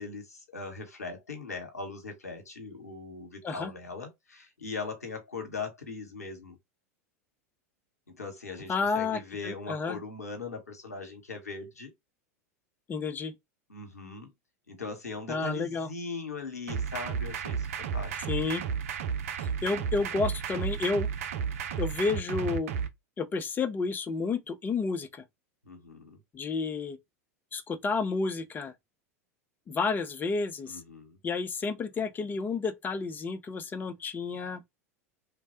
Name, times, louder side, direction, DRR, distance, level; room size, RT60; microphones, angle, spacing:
voice 1, 0.0-6.6 8.1-11.9 13.7-14.3 14.7-18.2 25.7-26.2 30.7-31.2, left 4 dB, 90° left, 0.9 m, -40 dB
voice 2, 8.7-10.0 12.9-13.3 15.3-15.9 18.3-18.6 19.4-21.1 21.8-22.7 23.2-25.2 26.3-27.0 27.5-28.7 29.7-30.8 31.2-34.6, left 4 dB, 20° left, 0.5 m, -31 dB
sound 1, 16.7-22.9, right 7 dB, 65° right, 0.6 m, -33 dB
3.1 x 2.2 x 2.8 m
figure-of-eight pair, 90°, 8 cm